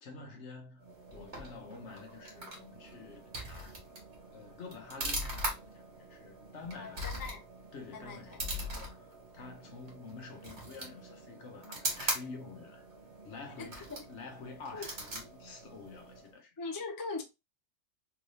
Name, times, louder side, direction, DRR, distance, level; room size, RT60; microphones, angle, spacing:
voice 1, 0.0-3.8 4.3-7.3 7.7-12.9 13.2-16.5, left 4 dB, 70° left, 1.2 m, -48 dB
sound 1, 0.8-16.4, right 1 dB, 60° right, 1.6 m, -42 dB
voice 2, 6.7-7.4 7.9-8.4 13.6-14.0 14.7-14.9 16.6-17.2, left 3 dB, 25° left, 0.4 m, -40 dB
3.6 x 2.6 x 3.1 m
omnidirectional pair, 1.2 m